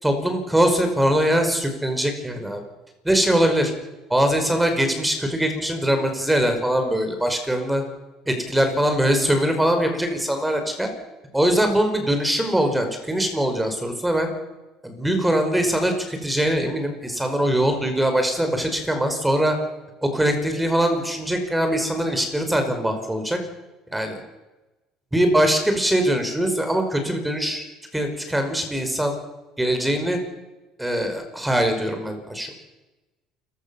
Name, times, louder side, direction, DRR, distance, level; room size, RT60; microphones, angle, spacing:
voice 1, 0.0-2.6 3.0-3.7 4.1-7.8 8.3-10.9 11.3-14.3 14.8-19.6 20.0-23.4 23.9-24.2 25.1-27.6 27.9-29.1 29.6-30.2 30.8-32.5, right 1 dB, 5° right, 6 dB, 5.2 m, -22 dB
29.0 x 16.0 x 7.1 m, 1.1 s
cardioid pair, 110°, 0 cm